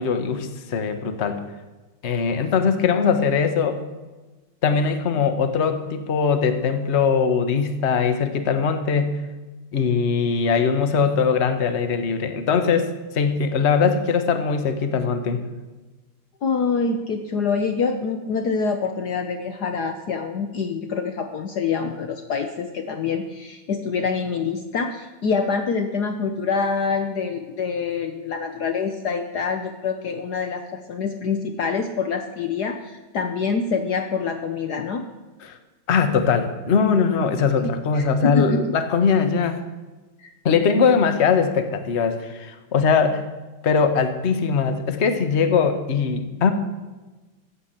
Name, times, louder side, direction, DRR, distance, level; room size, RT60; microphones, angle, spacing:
voice 1, 0.0-1.4 2.0-3.8 4.6-9.1 9.7-15.4 35.4-35.6 35.9-39.6 40.4-43.2 43.6-46.5, left 6 dB, 40° left, 8 dB, 1.3 m, -21 dB
voice 2, 16.4-35.1 37.6-38.8 40.2-40.3, left 5 dB, 60° left, 6 dB, 1.3 m, -26 dB
15.0 x 8.7 x 7.4 m, 1.2 s
omnidirectional pair, 2.2 m